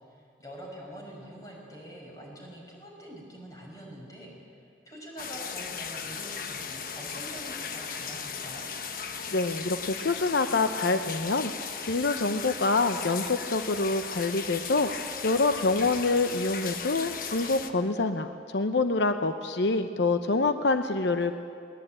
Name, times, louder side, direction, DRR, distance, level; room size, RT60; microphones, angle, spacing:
voice 1, 0.1-8.7, equal, 20° left, -2 dB, 5.9 m, -45 dB
sound 1, 5.2-17.7, left 6 dB, 50° left, 1.2 m, -37 dB
voice 2, 9.3-21.3, left 3 dB, 75° left, 9 dB, 0.8 m, -26 dB
22.0 x 19.5 x 9.0 m, 2.4 s
head